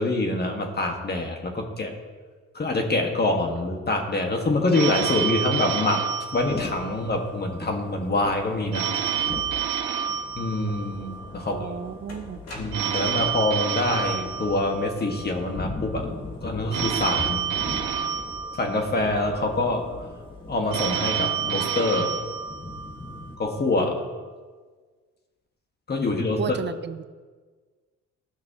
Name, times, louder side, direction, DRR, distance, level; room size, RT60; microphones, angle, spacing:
voice 1, 0.0-1.9 2.5-6.0 6.3-8.9 10.3-11.6 12.5-16.1 16.4-17.4 18.6-19.9 20.5-22.2 23.4-24.0 25.9-26.6, left 2 dB, 35° left, 3 dB, 1.6 m, -25 dB
Telephone, 4.7-7.2 8.7-11.2 12.7-15.2 16.7-19.2 20.7-23.2, right 8 dB, 90° right, 1.0 m, -29 dB
Thunder / Rain, 6.3-23.4, left 2 dB, 15° left, 1.6 m, -40 dB
sound 1, 11.1-11.2 12.1-13.2, left 2 dB, 55° left, 2.2 m, -42 dB
voice 2, 11.5-12.4 26.4-27.0, right 7 dB, 35° right, 13 dB, 0.5 m, -33 dB
16.0 x 5.9 x 2.9 m, 1.5 s
cardioid pair, 90°, 30 cm